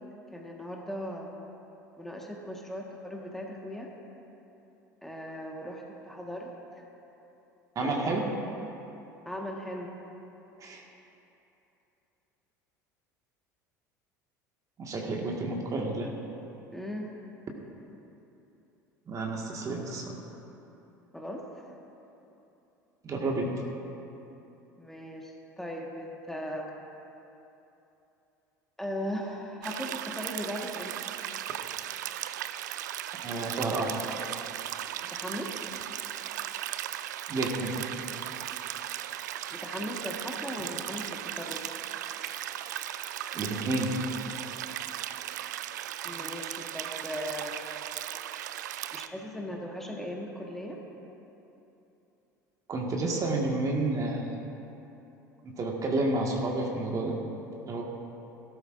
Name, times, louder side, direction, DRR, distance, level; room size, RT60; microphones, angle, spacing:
voice 1, 0.3-1.3 2.0-3.9 5.0-6.5 6.7-6.8 7.8-8.0 9.2-9.9 16.7-17.1 21.1-21.7 24.8-26.7 28.8-31.1 35.0-35.5 39.5-41.7 46.0-47.8 48.9-50.8, equal, 5° left, -1 dB, 1.6 m, -38 dB
voice 2, 7.7-8.2 10.6-10.8 14.8-16.1 19.1-20.2 23.0-23.5 33.1-34.1 37.3-37.8 43.3-43.9 52.7-54.4 55.4-57.2 57.6-57.8, right 2 dB, 35° right, 0 dB, 1.8 m, -30 dB
sound 1, 29.6-49.1, right 12 dB, 70° right, 0.4 m, -37 dB
17.5 x 12.5 x 2.6 m, 3.0 s
figure-of-eight pair, 70°, 10 cm